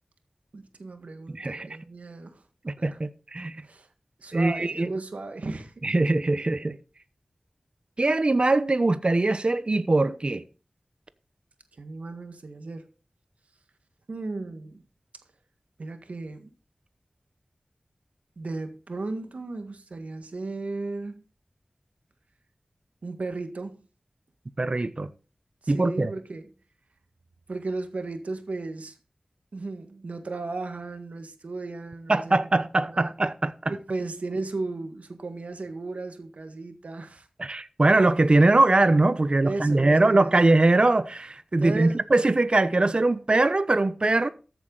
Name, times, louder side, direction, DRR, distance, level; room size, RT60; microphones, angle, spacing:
voice 1, 0.5-2.4 2.8-3.0 3.6-3.9 4.2-5.7 11.8-12.9 14.1-14.8 15.8-16.5 18.4-21.2 23.0-23.8 25.6-26.5 27.5-28.9 29.5-32.4 32.9-33.1 33.7-37.3 39.4-40.4 41.6-42.0 43.3-43.4, right 3 dB, 85° right, 1.6 m, -35 dB
voice 2, 1.3-1.7 2.6-3.6 4.3-4.9 5.8-6.8 8.0-10.4 24.6-25.1 25.7-26.1 32.1-33.7 37.4-44.3, right 2 dB, 45° right, 0.9 m, -22 dB
14.0 x 8.0 x 4.0 m
wide cardioid pair, 55°, 2 cm